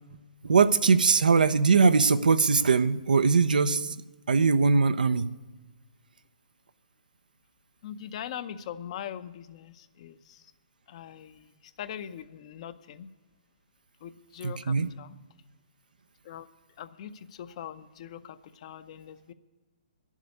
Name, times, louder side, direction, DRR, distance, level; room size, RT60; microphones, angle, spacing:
voice 1, 0.4-4.0 4.3-5.3 14.4-14.9, right 5 dB, 80° right, 11 dB, 0.5 m, -21 dB
voice 2, 7.8-10.5 10.9-13.1 14.0-15.2 16.2-16.5 16.8-19.3, left 9 dB, 45° left, 12 dB, 0.6 m, -42 dB
11.0 x 7.3 x 9.5 m, 1.3 s
hypercardioid pair, 135°, 5 cm